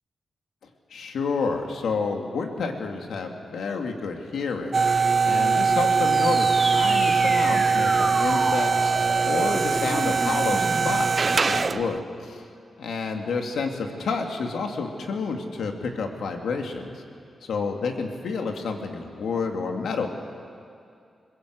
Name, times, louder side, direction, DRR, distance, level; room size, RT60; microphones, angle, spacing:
voice 1, 0.9-4.7 5.2-8.9 9.2-12.4 12.8-16.9 17.4-20.1, left 4 dB, 85° left, 3 dB, 2.4 m, -29 dB
sound 1, 4.7-12.0, right 5 dB, 40° right, 0.5 m, -22 dB
sound 2, 6.0-11.0, right 1 dB, 15° right, 6.2 m, -31 dB
22.5 x 21.0 x 8.0 m, 2.4 s
wide cardioid pair, 105°, 0 cm